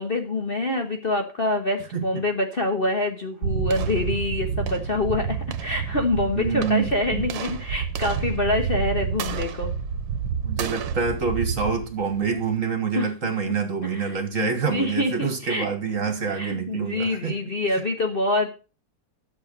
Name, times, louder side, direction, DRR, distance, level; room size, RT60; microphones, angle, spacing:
voice 1, 0.0-9.7 12.9-13.1 13.4-13.5 13.8-15.7 16.3-18.5, left 2 dB, 35° left, 4 dB, 1.2 m, -26 dB
sound 1, 3.4-12.6, right 7 dB, 80° right, 1.7 m, -29 dB
voice 2, 6.4-7.2 10.4-17.4 17.7-17.8, right 5 dB, 45° right, 7 dB, 1.8 m, -26 dB
11.5 x 7.0 x 5.3 m, 0.34 s
omnidirectional pair, 2.0 m